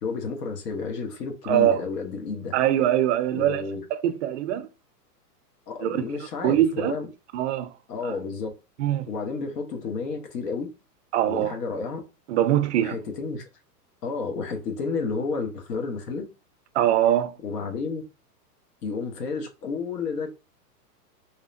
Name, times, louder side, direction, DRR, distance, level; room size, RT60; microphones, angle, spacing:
voice 1, 0.0-2.5 3.3-3.8 5.7-7.1 7.9-8.5 9.1-10.7 11.2-12.0 12.8-13.4 14.0-16.2 17.4-18.0 18.8-20.3, left 4 dB, 75° left, 1.0 m, -31 dB
voice 2, 1.4-1.8 2.5-3.6 3.9-4.7 5.8-6.0 6.4-6.9 7.3-7.7 8.0-8.1 8.8-9.1 11.1-11.5 12.3-13.0 16.7-17.4, right 12 dB, 50° right, 0.5 m, -22 dB
2.8 x 2.1 x 2.4 m
hypercardioid pair, 125°, 48 cm